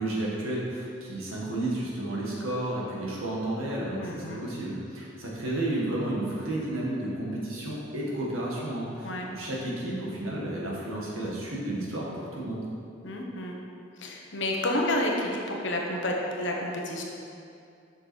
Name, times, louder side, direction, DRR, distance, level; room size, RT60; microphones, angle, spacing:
voice 1, 0.0-12.7, right 1 dB, 80° right, -5 dB, 1.8 m, -32 dB
voice 2, 4.0-4.4 9.0-9.3 13.0-13.6 14.0-17.0, left 1 dB, 60° left, 0 dB, 1.1 m, -30 dB
8.0 x 6.1 x 4.5 m, 2.6 s
head